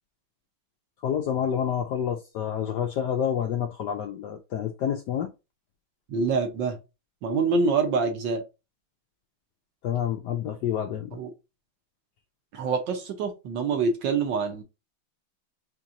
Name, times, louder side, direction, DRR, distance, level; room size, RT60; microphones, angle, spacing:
voice 1, 1.0-5.3 9.8-11.2, left 9 dB, 75° left, 1.0 m, -28 dB
voice 2, 6.1-6.8 7.2-8.4 11.1-11.3 12.5-14.6, right 4 dB, 65° right, 1.5 m, -26 dB
4.5 x 2.9 x 2.5 m
omnidirectional pair, 2.2 m